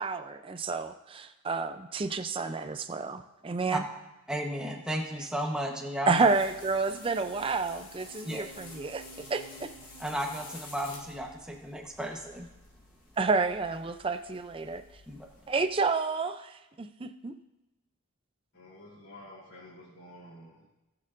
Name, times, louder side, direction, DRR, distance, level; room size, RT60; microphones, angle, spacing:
voice 1, 0.0-3.8 6.1-9.7 13.2-14.8 15.5-17.3, right 4 dB, 25° right, 9 dB, 0.4 m, -30 dB
voice 2, 4.3-6.3 8.2-8.4 10.0-12.5 15.1-15.3, equal, 5° right, 0 dB, 1.0 m, -34 dB
sound 1, 6.1-15.8, left 1 dB, 40° left, 2.1 m, -50 dB
voice 3, 18.5-20.7, left 1 dB, 65° left, -10 dB, 3.3 m, -50 dB
18.0 x 6.6 x 2.5 m, 0.98 s
head